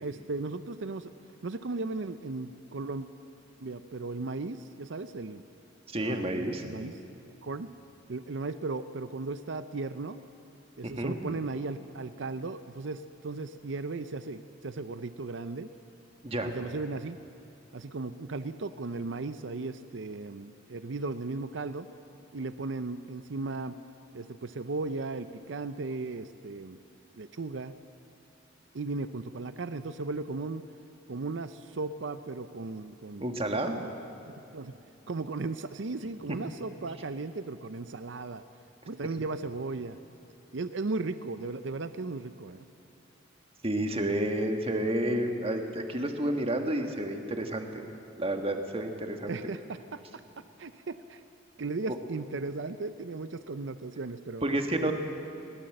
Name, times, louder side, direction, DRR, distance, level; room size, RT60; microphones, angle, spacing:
voice 1, 0.0-1.1 1.4-3.1 3.6-5.4 6.0-6.3 6.6-6.9 7.4-7.7 8.1-10.2 10.8-15.7 16.5-17.2 17.7-21.9 22.3-23.7 24.1-26.8 27.1-27.7 28.7-30.6 31.1-33.3 33.6-33.9 34.3-34.7 35.1-38.4 38.9-40.0 40.5-42.6 49.3-50.0 50.6-51.2 51.6-54.5 54.8-54.9, right 3 dB, 70° right, 12 dB, 0.6 m, -36 dB
voice 2, 5.9-6.6 10.8-11.2 16.2-16.5 33.2-33.8 36.3-36.4 43.6-47.8 48.2-49.4 54.4-54.9, right 1 dB, 30° right, 5 dB, 1.7 m, -30 dB
21.0 x 18.5 x 7.8 m, 2.8 s
head